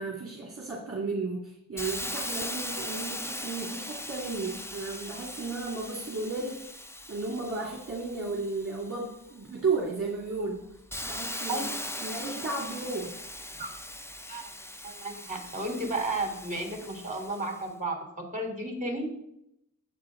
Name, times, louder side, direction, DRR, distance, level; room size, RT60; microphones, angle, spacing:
voice 1, 0.0-6.8 7.1-10.7 11.0-11.7 12.0-13.2, right 3 dB, 40° right, -3 dB, 2.4 m, -34 dB
Hiss, 1.8-9.3 9.8-17.6, left 1 dB, 10° left, 0.5 m, -39 dB
voice 2, 14.8-18.0 18.3-19.0, right 2 dB, 25° right, 1 dB, 3.8 m, -33 dB
15.5 x 9.8 x 3.9 m, 0.80 s
wide cardioid pair, 90°, 33 cm